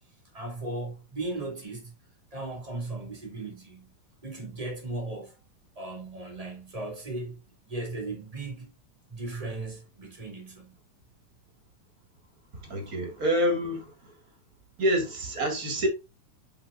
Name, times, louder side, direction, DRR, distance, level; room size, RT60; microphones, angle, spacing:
voice 1, 0.3-1.9 2.3-3.9 4.2-5.4 5.7-8.7 9.1-10.7, right 2 dB, 15° right, 1.5 m, -37 dB
voice 2, 12.6-14.1 14.8-15.9, equal, 35° right, 1.8 m, -27 dB
7.6 x 5.1 x 2.4 m
omnidirectional pair, 3.8 m